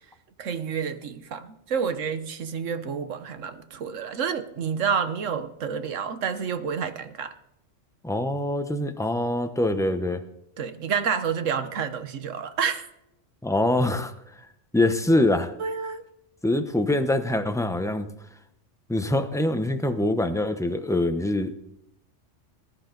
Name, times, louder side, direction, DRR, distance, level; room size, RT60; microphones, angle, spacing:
voice 1, 0.4-7.3 10.6-12.9 15.6-16.0, right 6 dB, 85° right, 10 dB, 1.4 m, -29 dB
voice 2, 8.0-10.2 13.4-14.1 14.7-15.5 16.4-18.1 18.9-21.5, left 1 dB, 5° left, 8 dB, 0.7 m, -24 dB
19.5 x 11.5 x 4.0 m, 0.82 s
omnidirectional pair, 1.3 m